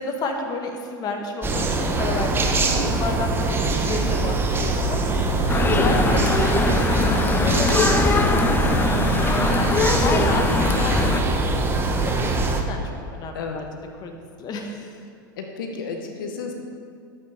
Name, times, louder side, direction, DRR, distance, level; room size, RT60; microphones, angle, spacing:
voice 1, 0.0-8.8 9.4-11.4 11.6-13.6 14.0-15.0, left 3 dB, 35° left, 4 dB, 1.5 m, -31 dB
sound 1, 1.4-12.6, right 3 dB, 20° right, 1.3 m, -23 dB
sound 2, 5.5-11.2, left 3 dB, 20° left, 0.9 m, -22 dB
voice 2, 15.4-16.5, left 4 dB, 75° left, 3 dB, 1.3 m, -31 dB
12.0 x 8.7 x 5.1 m, 2.5 s
hypercardioid pair, 95°, 11 cm